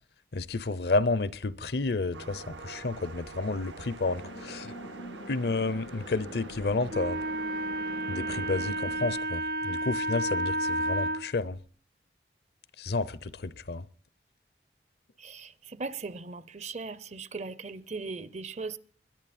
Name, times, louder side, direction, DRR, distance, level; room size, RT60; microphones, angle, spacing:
voice 1, 0.3-4.7 5.3-7.2 8.1-11.6 12.8-13.9, left 3 dB, 65° left, 0.6 m, -31 dB
sound 1, 2.1-8.7, right 3 dB, 90° right, 1.2 m, -46 dB
sound 2, 4.0-9.2, equal, 90° left, 2.8 m, -45 dB
Wind instrument woodwind instrument, 6.9-11.3, right 1 dB, 55° right, 0.9 m, -31 dB
voice 2, 15.2-18.8, right 4 dB, 40° right, 0.6 m, -38 dB
21.5 x 10.5 x 4.3 m
head